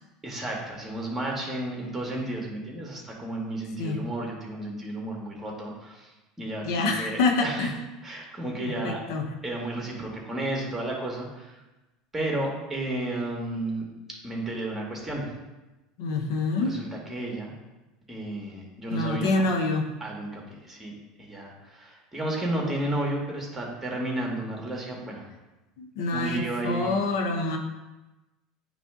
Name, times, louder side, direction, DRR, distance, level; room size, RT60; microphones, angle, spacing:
voice 1, 0.2-6.1 6.4-7.7 8.0-9.0 9.4-11.6 12.1-13.9 14.2-15.3 16.6-17.5 18.1-19.4 20.0-20.9 21.2-25.2 26.1-26.9, right 1 dB, 10° right, -1 dB, 2.0 m, -32 dB
voice 2, 6.6-7.7 8.6-9.3 16.0-16.8 18.9-19.8 25.8-27.6, left 3 dB, 75° left, 3 dB, 0.9 m, -26 dB
9.2 x 3.3 x 3.7 m, 1.1 s
hypercardioid pair, 90°, 2 cm